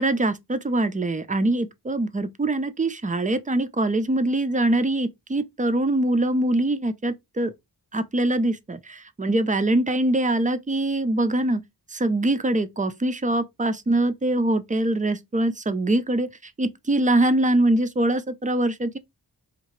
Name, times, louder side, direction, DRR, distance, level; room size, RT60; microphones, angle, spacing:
voice 1, 0.0-7.5 7.9-11.6 11.9-19.0, right 1 dB, 20° right, 0.4 m, -23 dB
2.7 x 2.5 x 3.1 m
cardioid pair, 45°, 42 cm